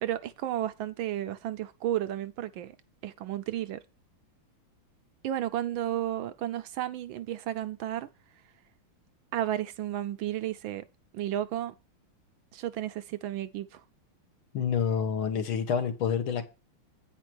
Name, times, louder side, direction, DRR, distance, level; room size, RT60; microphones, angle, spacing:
voice 1, 0.0-2.8 3.0-3.8 5.2-8.1 9.3-10.8 11.1-11.7 12.5-13.8, right 12 dB, 75° right, 1.3 m, -32 dB
voice 2, 14.5-16.5, left 7 dB, 70° left, 2.1 m, -28 dB
9.1 x 5.2 x 6.1 m
omnidirectional pair, 2.4 m